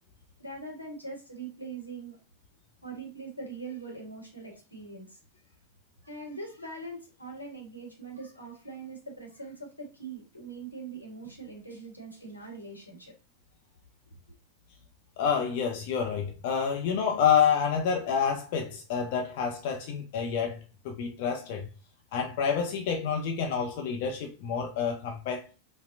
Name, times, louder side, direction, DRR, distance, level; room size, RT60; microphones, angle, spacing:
voice 1, 0.4-2.2 2.8-5.2 6.0-13.1 14.1-14.2, right 3 dB, 85° left, 1.0 m, -42 dB
voice 2, 15.2-20.6 20.8-21.7 22.1-25.4, left 7 dB, 50° left, 0.5 m, -28 dB
4.1 x 2.1 x 2.5 m
figure-of-eight pair, 90°, 0 cm